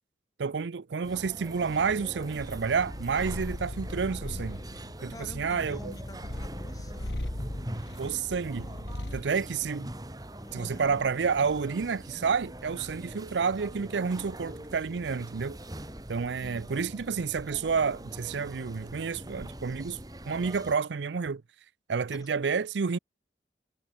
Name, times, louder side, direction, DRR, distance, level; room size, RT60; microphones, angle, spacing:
voice 1, 0.4-4.6 5.0-5.9 8.0-8.7 9.1-9.9 10.5-15.6 16.1-20.0 20.2-21.4 21.9-23.0, right 5 dB, 85° right, 0.5 m, -30 dB
sound 1, 1.0-20.8, right 1 dB, 20° right, 2.4 m, -43 dB
Purr, 2.4-9.3, left 1 dB, 90° left, 2.3 m, -39 dB
voice 2, 5.1-7.4 10.3-11.7 22.1-22.3, left 1 dB, 20° left, 5.0 m, -49 dB
head